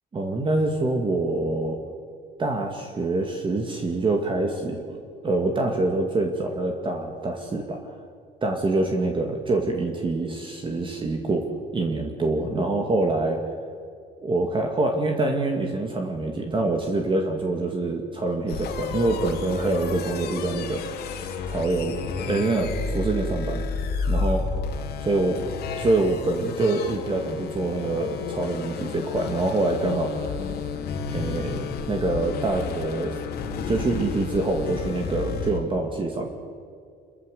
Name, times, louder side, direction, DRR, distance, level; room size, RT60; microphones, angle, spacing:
voice 1, 0.1-1.8 2.4-8.0 8.4-11.5 11.7-13.4 14.2-21.2 21.5-22.0 22.3-23.6 24.1-24.4 25.0-25.4 25.8-30.4 31.1-33.2 33.7-36.3, right 2 dB, 30° right, 3 dB, 2.3 m, -25 dB
sound 1, 18.5-35.6, left 5 dB, 75° left, 2.8 m, -31 dB
27.0 x 14.0 x 8.2 m, 2.3 s
cardioid pair, 110°, 17 cm